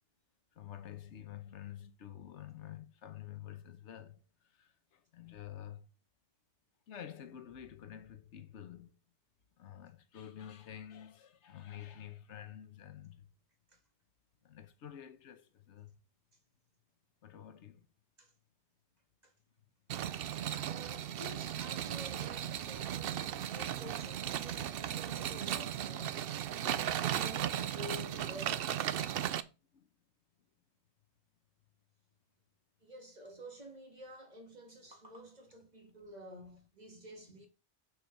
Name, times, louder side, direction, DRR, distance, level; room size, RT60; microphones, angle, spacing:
voice 1, 0.5-4.2 4.5-5.9 6.9-8.9 9.6-13.3 14.4-15.9 17.2-17.9 29.7-29.9, left 10 dB, 85° left, 1.1 m, -49 dB
sound 1, 19.9-29.4, right 10 dB, 65° right, 0.7 m, -36 dB
voice 2, 20.6-26.3 26.6-28.7 32.8-37.5, equal, 35° right, 1.9 m, -50 dB
6.7 x 4.5 x 5.2 m
omnidirectional pair, 1.2 m